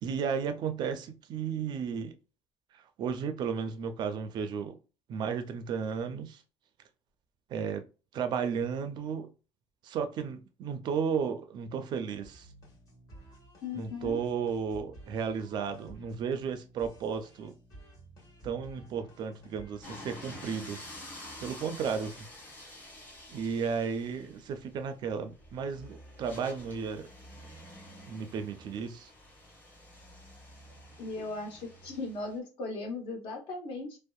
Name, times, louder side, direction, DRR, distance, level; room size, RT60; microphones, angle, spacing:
voice 1, 0.0-2.1 3.0-4.8 5.1-6.4 7.5-7.8 8.1-9.3 9.8-12.5 13.7-17.5 18.4-21.1 21.4-22.3 23.3-27.1 28.1-29.1, right 6 dB, 50° right, 0.4 m, -34 dB
sound 1, 12.2-19.9, right 1 dB, 35° left, 1.2 m, -53 dB
voice 2, 13.6-14.2 31.0-34.0, left 3 dB, 65° left, 0.9 m, -37 dB
sound 2, 19.8-32.4, left 1 dB, 15° left, 0.8 m, -49 dB
2.6 x 2.1 x 2.3 m
cardioid pair, 160°, 10 cm